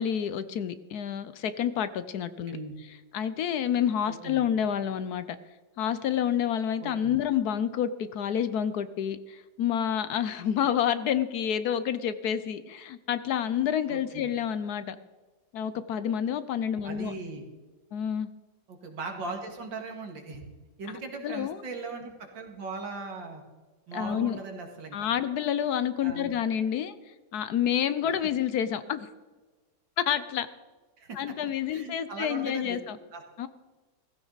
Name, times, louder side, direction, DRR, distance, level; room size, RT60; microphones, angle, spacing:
voice 1, 0.0-2.6 3.1-5.2 5.8-15.0 15.5-17.1 17.9-18.3 20.9-21.6 23.9-24.4 24.9-26.9 27.3-29.1 30.0-30.5 31.1-33.0 33.4-33.5, left 9 dB, 65° left, 13 dB, 1.1 m, -29 dB
voice 2, 4.1-4.4 6.8-7.2 13.9-14.3 16.8-17.4 18.7-20.4 20.8-23.4 23.9-25.0 26.0-26.3 31.0-31.2 31.7-32.8 33.1-33.2, right 3 dB, 90° right, 3 dB, 2.8 m, -39 dB
16.0 x 15.5 x 4.0 m, 1.3 s
omnidirectional pair, 2.0 m